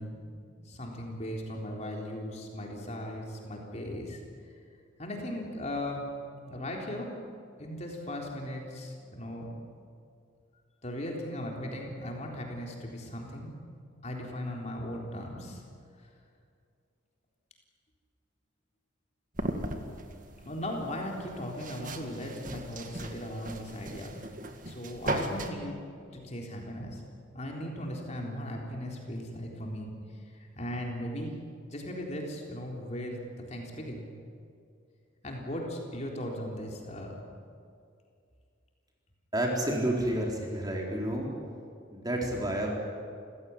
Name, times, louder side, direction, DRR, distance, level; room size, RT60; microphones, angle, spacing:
voice 1, 0.0-4.2 5.0-6.1 6.5-7.2 7.6-9.5 10.8-13.5 14.0-15.6 16.0-16.1 20.4-24.2 24.6-25.8 26.1-27.0 27.3-29.9 30.6-31.3 31.7-34.1 35.2-37.2, left 1 dB, 35° left, 0 dB, 3.8 m, -37 dB
sound 1, 19.3-25.5, right 1 dB, 40° right, 1.9 m, -38 dB
voice 2, 39.3-41.3 41.9-42.7, right 1 dB, 20° right, -1 dB, 4.1 m, -30 dB
28.5 x 16.5 x 9.7 m, 2.3 s
head